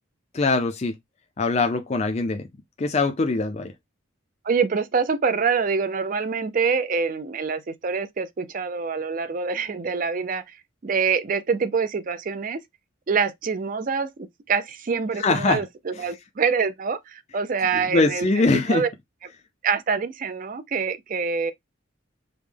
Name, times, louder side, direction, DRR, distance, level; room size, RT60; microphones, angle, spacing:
voice 1, 0.3-0.9 1.4-2.4 2.8-3.7 15.1-15.6 16.0-16.1 17.7-18.8, left 3 dB, 30° left, 0.4 m, -22 dB
voice 2, 4.4-10.4 10.8-12.6 13.1-14.1 14.5-18.3 18.7-18.9 19.6-21.5, right 5 dB, 40° right, 0.4 m, -25 dB
5.2 x 2.1 x 3.3 m
head